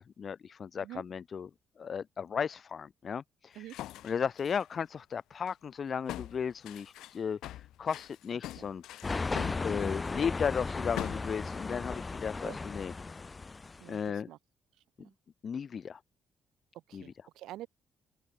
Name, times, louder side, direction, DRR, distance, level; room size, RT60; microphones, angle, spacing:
voice 1, 0.0-1.5 1.8-3.8 4.0-12.9 13.9-14.3 15.4-16.0 16.9-17.1, left 7 dB, 50° left, 1.0 m, -35 dB
sound 1, 3.7-4.7 5.5-5.6 6.1-10.2 11.0-11.4, left 14 dB, 85° left, 5.5 m, -43 dB
sound 2, 9.0-14.0, left 3 dB, 25° left, 2.6 m, -36 dB
voice 2, 13.8-14.4 15.0-15.1 16.9-17.7, right 14 dB, 85° right, 1.9 m, -46 dB
open air
cardioid pair, 90°, 0 cm